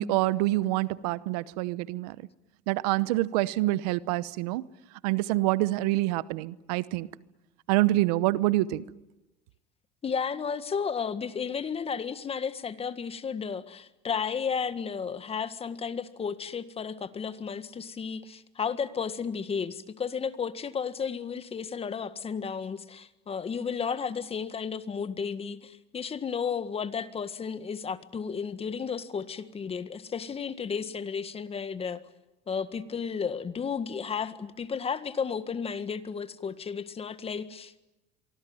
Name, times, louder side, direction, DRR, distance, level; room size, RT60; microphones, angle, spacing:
voice 1, 0.0-2.2 2.7-4.6 5.0-7.1 7.7-8.8, right 17 dB, 85° right, 0.9 m, -26 dB
voice 2, 10.0-32.0 32.5-37.8, left 6 dB, 30° left, 1.7 m, -33 dB
25.5 x 24.0 x 9.5 m
supercardioid pair, 100°, 20 cm